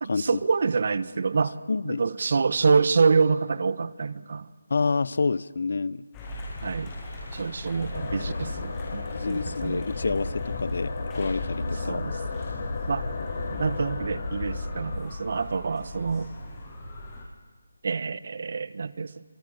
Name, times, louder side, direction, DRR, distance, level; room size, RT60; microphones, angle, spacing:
voice 1, 0.0-1.6 1.8-4.5 6.6-6.9 7.3-9.8 11.9-12.2 12.9-13.1 13.6-16.3 17.8-19.2, right 4 dB, 50° right, 15 dB, 1.1 m, -26 dB
voice 2, 1.7-2.0 4.7-6.0 9.1-12.0, left 4 dB, 60° left, 18 dB, 0.9 m, -28 dB
sound 1, 6.1-17.2, left 1 dB, 15° left, 7.9 m, -38 dB
sound 2, 7.9-15.0, left 3 dB, 40° left, 4.6 m, -34 dB
27.5 x 27.0 x 6.6 m, 1.4 s
figure-of-eight pair, 165°, 0 cm